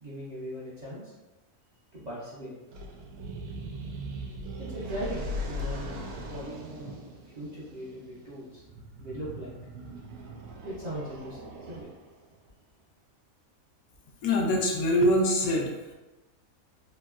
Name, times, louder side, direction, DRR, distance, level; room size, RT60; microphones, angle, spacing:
voice 1, 0.0-1.1 1.9-2.5 4.6-6.0 6.3-6.4 7.3-8.6 9.0-9.5 10.6-11.4 11.7-11.9, right 1 dB, 45° right, -9 dB, 0.5 m, -38 dB
sound 1, 2.7-12.2, equal, 90° right, 1.1 m, -39 dB
voice 2, 14.2-15.7, left 1 dB, 75° left, 0 dB, 1.0 m, -24 dB
3.1 x 2.7 x 2.3 m, 1.1 s
omnidirectional pair, 1.5 m